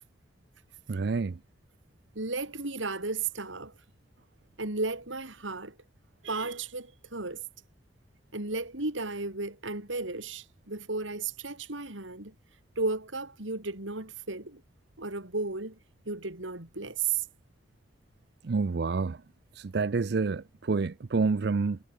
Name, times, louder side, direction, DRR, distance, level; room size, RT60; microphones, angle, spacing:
voice 1, 0.9-1.4 18.4-19.2 19.6-21.8, right 4 dB, 60° right, 0.5 m, -28 dB
voice 2, 2.2-3.7 4.6-5.8 6.2-7.4 8.3-12.3 12.8-14.6 15.0-15.8 16.1-17.2, right 3 dB, 85° right, 3.8 m, -34 dB
head